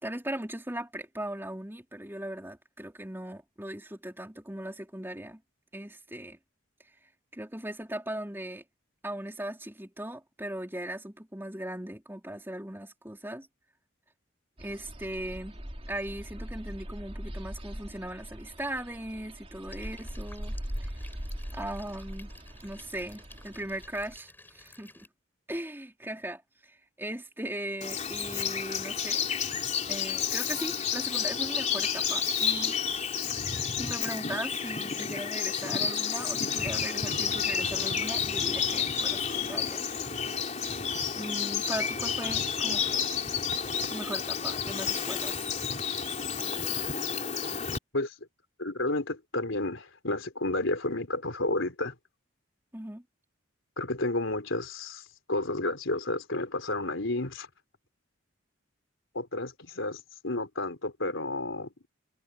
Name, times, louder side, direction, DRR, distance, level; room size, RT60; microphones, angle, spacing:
voice 1, 0.0-5.4 5.7-6.4 7.3-8.6 9.0-13.5 14.6-15.6 15.9-20.9 21.5-22.3 22.6-25.1 25.5-29.3 29.9-32.8 33.8-39.8 40.1-43.1 43.9-45.5 52.7-53.0, right 1 dB, 10° right, 4.0 m, -38 dB
sound 1, 14.6-24.2, equal, 30° right, 3.5 m, -41 dB
sound 2, 19.7-25.1, left 2 dB, 10° left, 7.7 m, -54 dB
Bird vocalization bird call bird song, 27.8-47.8, left 7 dB, 35° left, 3.7 m, -30 dB
voice 2, 48.6-52.0 53.8-57.5 59.1-61.7, left 2 dB, 70° left, 3.8 m, -31 dB
head